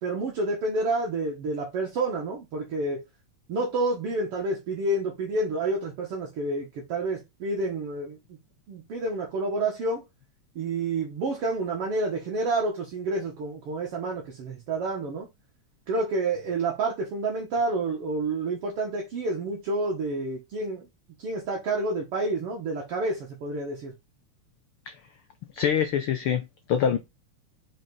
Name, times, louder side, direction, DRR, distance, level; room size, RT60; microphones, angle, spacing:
voice 1, 0.0-3.0 3.5-8.4 8.7-10.0 10.6-15.3 15.9-20.9 21.2-23.9, right 2 dB, 55° right, 2.3 m, -29 dB
voice 2, 25.5-27.0, left 8 dB, 80° left, 1.2 m, -25 dB
6.0 x 5.1 x 4.0 m
omnidirectional pair, 3.3 m